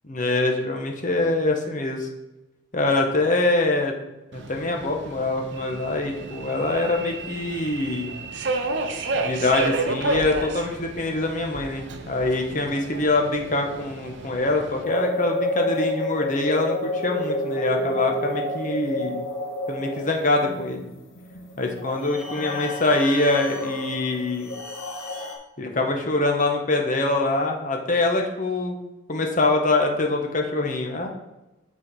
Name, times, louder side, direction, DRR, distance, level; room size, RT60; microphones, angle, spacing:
voice 1, 0.1-2.1 2.7-3.9 4.3-8.2 9.2-19.2 19.7-20.9 21.6-24.5 25.6-28.8 29.1-31.1, left 2 dB, 40° left, 2 dB, 0.9 m, -24 dB
Subway metro underground, 4.3-14.8, right 3 dB, 55° right, 0.6 m, -32 dB
sound 1, 14.8-25.4, left 1 dB, 80° left, 1.3 m, -30 dB
6.3 x 4.5 x 4.7 m, 1.0 s
head